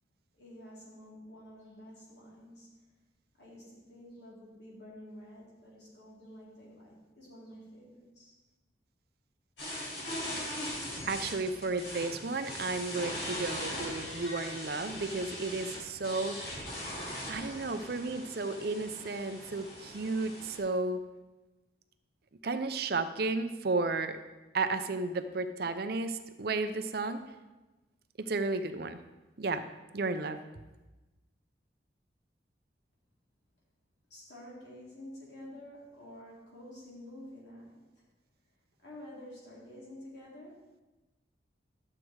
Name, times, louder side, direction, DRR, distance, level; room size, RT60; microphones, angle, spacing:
voice 1, 0.3-2.7 3.4-8.3 34.1-38.0 38.8-40.6, left 1 dB, 65° left, -5 dB, 3.9 m, -50 dB
sound 1, 9.6-20.6, left 1 dB, 90° left, 4.3 m, -40 dB
voice 2, 11.1-16.4 17.3-21.0 22.4-24.2 24.5-27.2 28.2-29.0 29.4-29.7 29.9-30.4, right 3 dB, 55° right, 9 dB, 0.6 m, -33 dB
11.5 x 7.6 x 4.7 m, 1.1 s
head